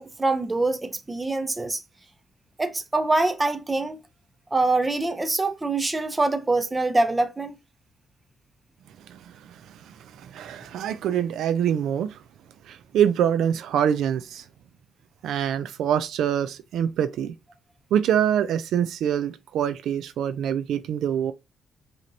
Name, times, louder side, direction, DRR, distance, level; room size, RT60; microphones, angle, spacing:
voice 1, 0.0-1.8 2.6-4.0 4.5-7.5, right 2 dB, 20° right, 0.7 m, -24 dB
voice 2, 9.1-12.2 12.6-14.5 15.2-17.3 17.9-21.3, right 9 dB, 75° right, 0.3 m, -25 dB
5.0 x 2.9 x 2.7 m
cardioid pair, 90°, 0 cm